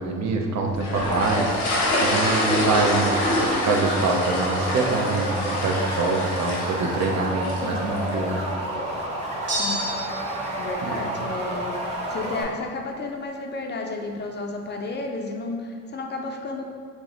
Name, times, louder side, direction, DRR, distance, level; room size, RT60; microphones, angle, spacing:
voice 1, 0.0-1.5 2.0-3.2 3.5-8.4 10.9-11.0, right 3 dB, 65° right, 1 dB, 0.6 m, -25 dB
sound 1, 0.8-8.1, left 1 dB, 85° left, 0.9 m, -27 dB
sound 2, 1.0-12.4, right 1 dB, 20° right, 0.8 m, -30 dB
voice 2, 7.6-8.1 9.6-9.9 10.6-16.7, left 2 dB, 35° left, 2 dB, 0.4 m, -32 dB
sound 3, 9.5-10.4, right 1 dB, 35° right, 1.1 m, -29 dB
4.6 x 2.1 x 3.8 m, 2.1 s
cardioid pair, 90°, 30 cm